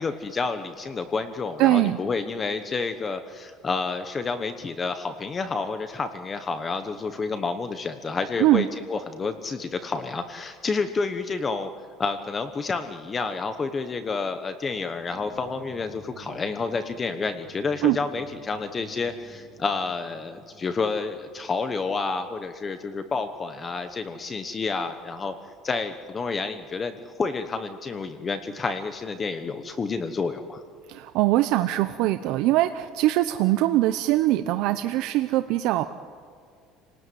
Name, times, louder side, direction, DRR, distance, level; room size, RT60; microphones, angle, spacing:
voice 1, 0.0-11.7 12.0-25.3 25.6-30.6, left 4 dB, 20° left, 9 dB, 1.1 m, -29 dB
voice 2, 1.6-2.0 8.4-8.7 17.8-18.0 30.9-35.9, right 16 dB, 65° right, 10 dB, 0.8 m, -22 dB
sound 1, 15.0-22.7, right 4 dB, 20° right, 4.7 m, -52 dB
29.5 x 19.0 x 9.4 m, 2.2 s
cardioid pair, 160°, 0 cm